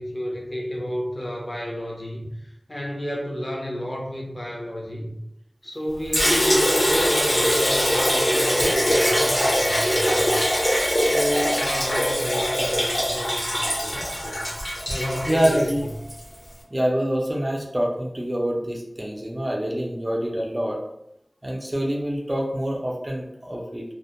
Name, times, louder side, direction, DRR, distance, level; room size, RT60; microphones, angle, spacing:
voice 1, 0.0-5.1 5.6-10.3 10.9-13.9 14.2-14.5 14.9-15.7, equal, 35° left, -2 dB, 0.6 m, -31 dB
Liquid, 6.1-16.2, equal, 80° left, 0.9 m, -22 dB
voice 2, 15.3-15.9 16.7-20.8 21.4-23.9, equal, 30° right, -1 dB, 0.5 m, -26 dB
2.1 x 2.1 x 2.8 m, 0.79 s
wide cardioid pair, 55°, 0 cm